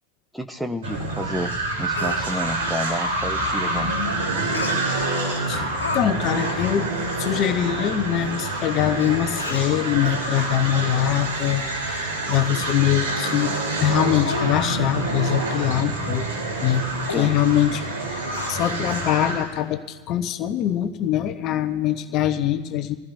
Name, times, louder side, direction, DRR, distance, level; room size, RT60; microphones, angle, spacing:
voice 1, 0.3-3.9 17.1-17.3, equal, ahead, 7 dB, 0.8 m, -30 dB
sound 1, 0.8-19.5, right 2 dB, 60° right, 3.8 m, -27 dB
Speech, 1.2-1.3 1.7-2.2 4.5-5.1 5.5-6.0 6.3-6.5 7.0-7.1 7.3-7.5 8.3-8.4 9.0-9.1 9.4-9.8 10.4-10.6 11.1-11.7 12.0-12.2 12.7-12.8 13.3-13.4 13.8-13.9 14.2-14.6 14.9-15.1 15.4-15.6 16.0-16.1 16.5-16.7 17.1-17.3 18.3-19.0 19.4-19.5, left 5 dB, 70° left, 1.4 m, -34 dB
voice 2, 5.9-6.9 7.2-13.5 13.8-16.3 16.6-17.9 18.5-22.9, left 11 dB, 35° left, 9 dB, 1.0 m, -23 dB
25.5 x 15.5 x 2.8 m, 1.3 s
figure-of-eight pair, 90°, 0 cm